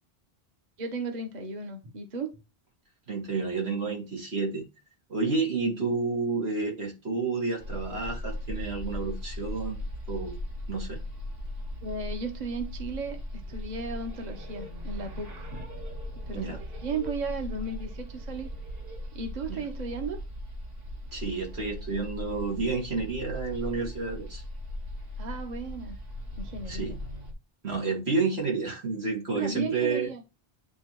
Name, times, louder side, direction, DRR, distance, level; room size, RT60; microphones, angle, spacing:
voice 1, 0.8-2.4 11.8-15.7 16.3-18.5 19.1-20.2 25.2-26.0 26.4-27.0 29.3-30.2, right 4 dB, 45° right, 5 dB, 1.1 m, -35 dB
voice 2, 3.1-4.6 5.1-10.4 10.7-11.0 16.3-16.6 19.5-19.6 21.1-24.4 26.7-27.0 27.6-30.1, right 4 dB, 90° right, 0 dB, 2.3 m, -30 dB
sound 1, 7.6-27.3, left 1 dB, 65° right, 1.7 m, -38 dB
9.6 x 3.4 x 3.0 m, 0.26 s
omnidirectional pair, 1.0 m